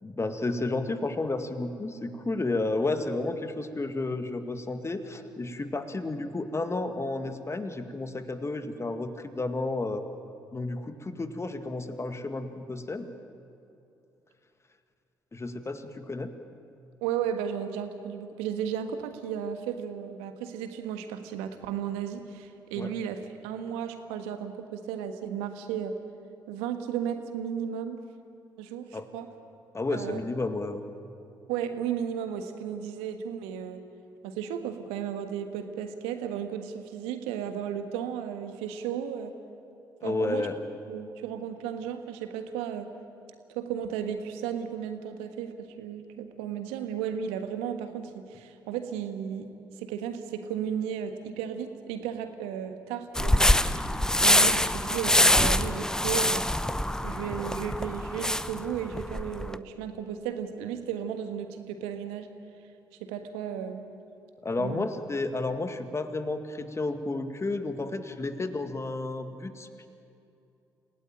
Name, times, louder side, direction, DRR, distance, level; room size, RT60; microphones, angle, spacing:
voice 1, 0.0-10.1 10.5-13.1 15.3-16.3 22.8-22.9 28.9-29.1 29.7-30.8 40.0-40.6 64.4-69.9, left 2 dB, 25° left, 8 dB, 2.1 m, -32 dB
voice 2, 17.0-25.9 26.5-28.0 28.6-29.3 29.9-30.2 31.5-33.8 34.2-39.3 40.0-40.5 40.9-42.9 43.5-49.5 49.8-53.4 54.2-56.5 57.0-62.3 63.0-63.8 64.6-64.9, right 8 dB, 75° right, 8 dB, 1.5 m, -34 dB
sound 1, 53.1-59.6, left 1 dB, 5° left, 0.8 m, -24 dB
27.5 x 17.0 x 9.1 m, 2.7 s
figure-of-eight pair, 45°, 10 cm